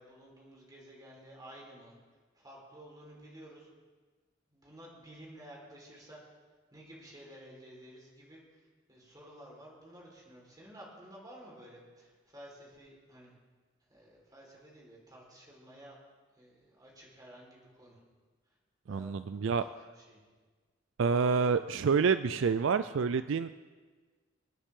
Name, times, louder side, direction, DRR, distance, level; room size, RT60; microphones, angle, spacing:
voice 1, 0.0-2.0 2.3-3.7 4.5-6.2 6.7-8.6 8.9-13.3 13.9-16.0 16.3-18.0 18.5-18.6 18.9-20.2, right 1 dB, 20° right, -3 dB, 4.3 m, -53 dB
voice 2, 18.9-19.6 21.0-23.5, right 5 dB, 70° right, 12 dB, 0.4 m, -28 dB
28.0 x 10.0 x 3.7 m, 1.4 s
head